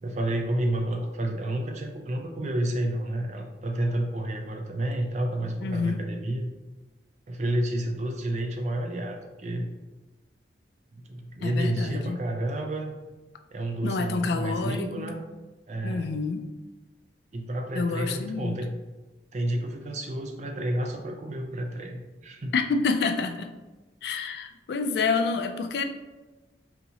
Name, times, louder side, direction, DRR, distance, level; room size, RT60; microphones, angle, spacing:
voice 1, 0.0-6.5 7.3-9.7 10.9-12.9 13.5-15.2 15.7-16.1 17.3-18.7 19.3-22.5, right 1 dB, 40° right, 3 dB, 0.4 m, -30 dB
voice 2, 5.6-6.0 11.4-12.2 13.8-15.2 15.8-16.4 17.7-18.6 22.5-23.5 24.0-25.8, left 4 dB, 65° left, 7 dB, 0.3 m, -28 dB
4.0 x 2.8 x 2.7 m, 1.2 s
head